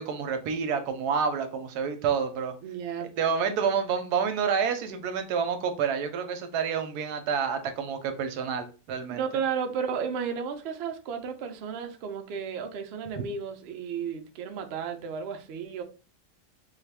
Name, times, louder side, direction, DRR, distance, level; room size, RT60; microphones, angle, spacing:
voice 1, 0.0-2.5 3.0-9.2, right 6 dB, 85° right, 1.1 m, -28 dB
voice 2, 2.6-3.1 9.1-15.8, right 6 dB, 65° right, 0.6 m, -33 dB
3.5 x 2.4 x 3.3 m
omnidirectional pair, 1.7 m